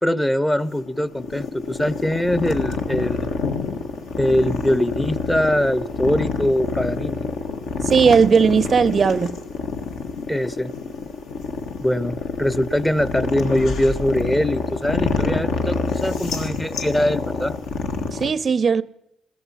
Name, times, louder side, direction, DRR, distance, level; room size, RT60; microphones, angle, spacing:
voice 1, 0.0-3.3 4.2-7.3 10.3-10.7 11.8-17.5, left 1 dB, 10° left, 0.6 m, -22 dB
sound 1, 0.6-18.3, left 4 dB, 80° left, 1.6 m, -27 dB
voice 2, 7.9-9.4 18.1-18.8, right 6 dB, 45° right, 0.4 m, -17 dB
15.5 x 14.0 x 5.6 m
cardioid pair, 90°, 0 cm